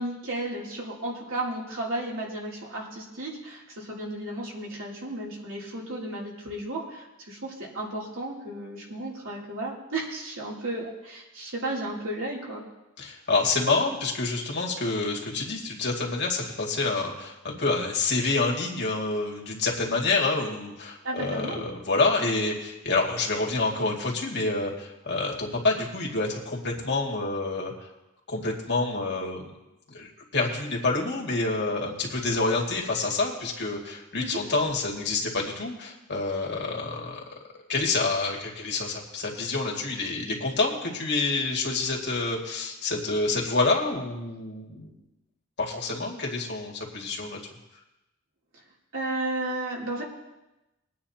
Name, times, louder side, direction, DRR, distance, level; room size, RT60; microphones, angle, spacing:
voice 1, 0.0-12.6 21.0-21.7 34.2-34.4 48.9-50.0, right 1 dB, 70° right, -4 dB, 3.1 m, -33 dB
voice 2, 13.0-27.7 28.3-29.5 29.9-37.2 37.7-44.9 45.6-47.4, left 3 dB, 55° left, -1 dB, 2.3 m, -27 dB
22.0 x 9.4 x 2.9 m, 0.97 s
head